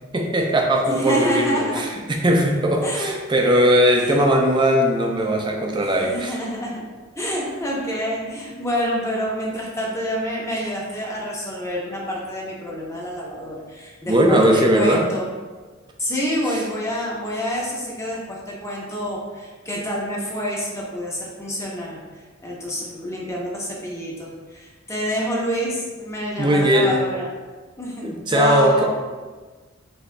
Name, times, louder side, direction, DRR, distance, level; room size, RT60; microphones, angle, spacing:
voice 1, 0.1-6.4 14.1-15.1 26.4-27.0 28.0-28.8, equal, 25° right, 1 dB, 0.5 m, -19 dB
voice 2, 0.9-1.9 2.8-3.1 4.0-4.2 5.2-5.3 5.8-6.9 7.2-15.3 16.0-27.3 27.8-28.8, equal, 15° left, -4 dB, 0.8 m, -27 dB
6.2 x 2.7 x 2.2 m, 1.4 s
head